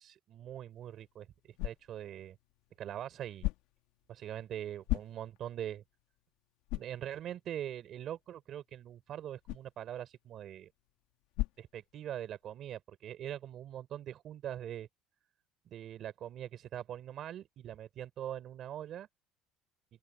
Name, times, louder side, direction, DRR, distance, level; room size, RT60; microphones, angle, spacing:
voice 1, 0.0-2.4 2.8-3.5 4.1-5.8 6.7-10.7 11.6-14.9 15.7-19.1, right 11 dB, 40° right, 3.4 m, -42 dB
sound 1, 0.7-12.4, left 18 dB, 80° left, 1.4 m, -43 dB
open air
cardioid pair, 175°, 0 cm